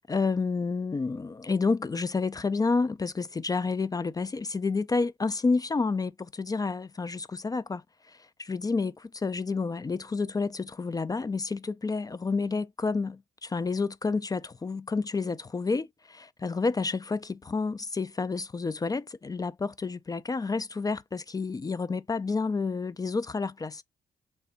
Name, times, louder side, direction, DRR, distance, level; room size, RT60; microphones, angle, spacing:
voice 1, 0.1-7.8 8.1-8.9 9.2-23.8, left 4 dB, 20° left, 0.3 m, -29 dB
3.4 x 2.0 x 3.9 m
hypercardioid pair, 40°, 18 cm